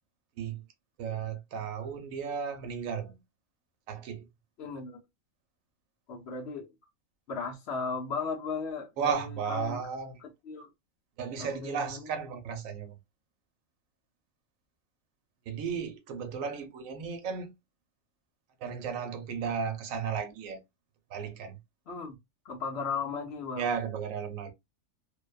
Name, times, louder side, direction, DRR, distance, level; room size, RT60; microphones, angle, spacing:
voice 1, 1.0-3.1 3.9-4.2 9.0-10.2 11.2-12.9 15.5-17.5 18.6-20.6 21.1-21.6 23.6-24.5, right 6 dB, 75° right, 1.0 m, -34 dB
voice 2, 4.6-5.0 6.1-6.7 7.3-9.8 10.2-10.7 11.4-12.1 21.9-22.2 22.4-23.7, left 5 dB, 60° left, 0.8 m, -36 dB
2.6 x 2.2 x 2.2 m
omnidirectional pair, 1.4 m